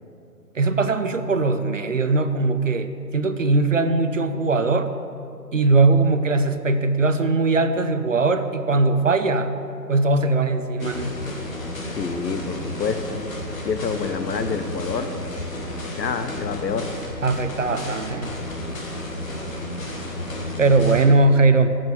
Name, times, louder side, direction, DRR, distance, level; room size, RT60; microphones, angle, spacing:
voice 1, 0.6-4.9 5.5-9.6 9.9-11.2 17.2-18.4 20.6-21.8, right 3 dB, 55° right, 10 dB, 0.5 m, -20 dB
sound 1, 10.8-21.0, left 1 dB, 55° left, 1.6 m, -32 dB
voice 2, 12.0-13.2 13.6-15.2 16.0-16.9, left 5 dB, 85° left, 9 dB, 0.9 m, -27 dB
7.6 x 5.8 x 7.4 m, 2.6 s
hypercardioid pair, 170°, 50 cm